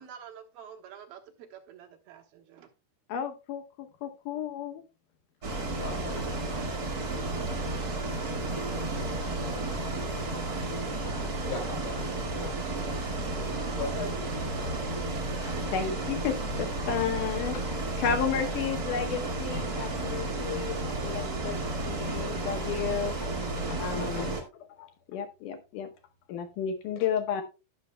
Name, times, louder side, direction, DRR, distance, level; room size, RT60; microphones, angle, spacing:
voice 1, 0.0-2.7, right 8 dB, 70° right, 2.9 m, -48 dB
voice 2, 3.1-4.8 15.5-21.6 21.9-23.3 23.7-24.4 24.8-25.9 26.3-27.4, left 7 dB, 75° left, 2.0 m, -33 dB
Bus, 5.4-24.4, right 2 dB, 40° right, 1.3 m, -32 dB
voice 3, 5.5-6.2 8.3-14.9, left 4 dB, 90° left, 6.2 m, -43 dB
17.0 x 6.3 x 2.2 m
omnidirectional pair, 4.6 m